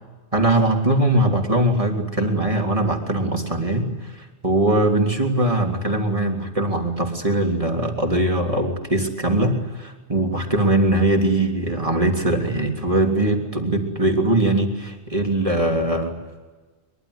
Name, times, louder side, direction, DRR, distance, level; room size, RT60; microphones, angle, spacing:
voice 1, 0.3-3.9 4.1-16.1, right 1 dB, 30° right, 2 dB, 3.3 m, -21 dB
23.5 x 23.5 x 9.6 m, 1.3 s
omnidirectional pair, 1.2 m